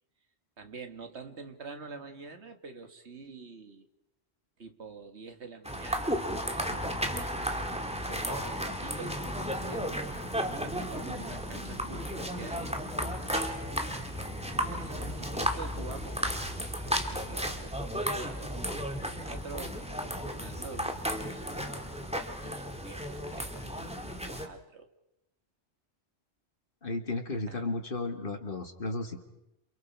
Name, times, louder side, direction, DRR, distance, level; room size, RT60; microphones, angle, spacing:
voice 1, 0.6-3.9 4.6-7.1 7.5-10.1 10.7-13.4 14.5-16.4 16.9-21.7 22.4-24.9 27.5-27.7, right 4 dB, 75° right, 6 dB, 2.1 m, -47 dB
sound 1, 5.6-24.5, equal, 5° right, 1.9 m, -34 dB
sound 2, 8.2-17.7, equal, 55° right, 5.8 m, -52 dB
voice 2, 26.8-29.2, left 2 dB, 50° left, 6 dB, 2.2 m, -34 dB
28.5 x 28.0 x 4.7 m, 0.89 s
omnidirectional pair, 1.2 m